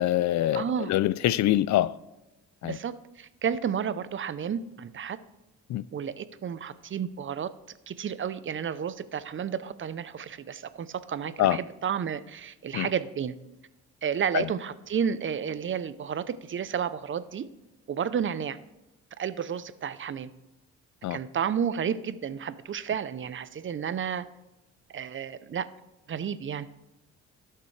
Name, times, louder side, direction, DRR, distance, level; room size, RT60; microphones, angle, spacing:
voice 1, 0.0-1.9 2.6-2.8 5.7-5.8 11.4-11.6 12.7-12.9 14.3-14.4 21.0-21.2, left 13 dB, 65° left, 19 dB, 0.5 m, -24 dB
voice 2, 0.5-0.9 2.6-5.2 5.9-7.5 7.9-13.3 14.0-17.5 17.9-18.6 19.2-20.3 21.1-24.2 24.9-25.7 26.1-26.7, right 8 dB, 40° right, 14 dB, 0.6 m, -31 dB
18.0 x 6.7 x 3.3 m, 0.98 s
cardioid pair, 90°, 30 cm